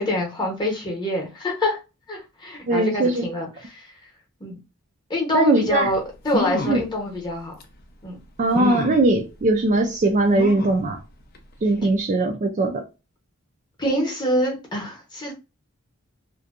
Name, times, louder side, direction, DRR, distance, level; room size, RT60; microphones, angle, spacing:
voice 1, 0.0-1.8 2.1-3.9 4.4-4.6 5.1-7.5 8.0-8.2 13.8-15.3, left 1 dB, 20° left, 0.8 m, -25 dB
voice 2, 2.7-3.3 5.3-5.9 6.7-6.8 8.4-11.0 11.6-12.8, right 2 dB, 35° right, 0.3 m, -20 dB
sound 1, 5.9-6.0 6.3-6.9 7.6-7.7 8.5-9.1 10.4-10.8 11.3-11.4 11.7-11.8, left 3 dB, 45° left, 0.4 m, -28 dB
2.6 x 2.2 x 2.4 m
head